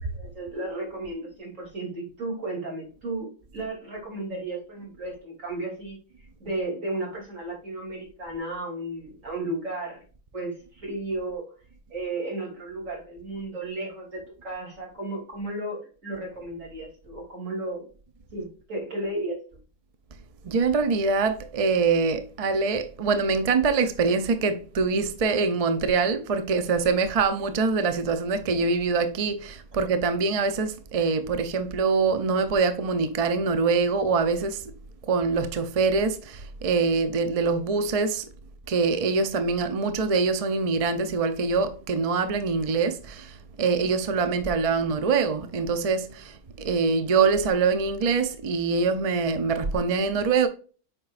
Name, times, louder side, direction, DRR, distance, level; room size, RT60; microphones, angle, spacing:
voice 1, 0.0-6.0 6.4-10.0 10.3-11.5 11.9-17.8 18.3-19.4, right 2 dB, 65° right, 3.3 m, -34 dB
voice 2, 20.4-34.6 35.0-38.3 38.7-50.5, right 4 dB, 45° right, 0.4 m, -24 dB
8.0 x 5.2 x 2.4 m
omnidirectional pair, 1.5 m